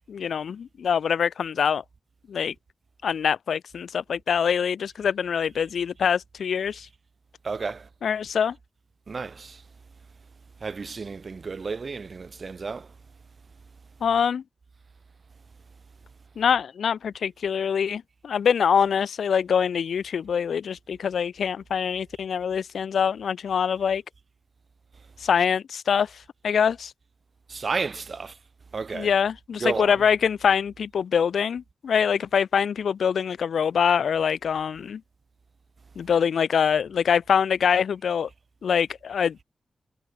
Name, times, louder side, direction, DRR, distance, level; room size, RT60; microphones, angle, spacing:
voice 1, 0.0-1.8 2.3-2.5 3.0-6.9 8.0-8.6 14.0-14.4 16.4-24.0 25.2-26.1 26.4-26.9 28.9-35.0 36.0-38.3 38.6-39.4, left 7 dB, 90° left, 0.5 m, -24 dB
voice 2, 7.4-7.9 9.1-9.6 10.6-12.9 27.5-28.3 28.7-29.1 29.6-30.0, right 4 dB, 60° right, 1.2 m, -32 dB
cardioid pair, 45°, 0 cm